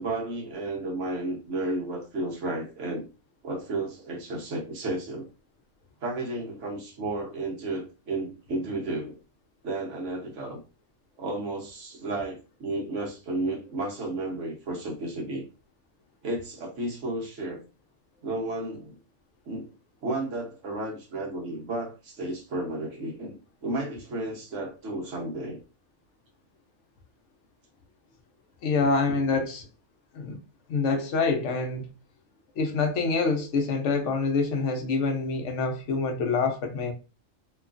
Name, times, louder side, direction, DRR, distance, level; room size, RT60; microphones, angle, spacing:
voice 1, 0.0-3.1 3.4-5.3 6.0-9.2 9.6-10.6 11.2-15.4 16.2-17.6 18.2-19.0 19.4-19.7 20.0-23.4 23.6-25.6, right 2 dB, 75° right, 1.3 m, -32 dB
voice 2, 28.6-29.7 30.1-30.4 30.7-31.9 32.6-36.9, left 4 dB, 70° left, 0.9 m, -26 dB
3.0 x 2.3 x 2.4 m
omnidirectional pair, 1.3 m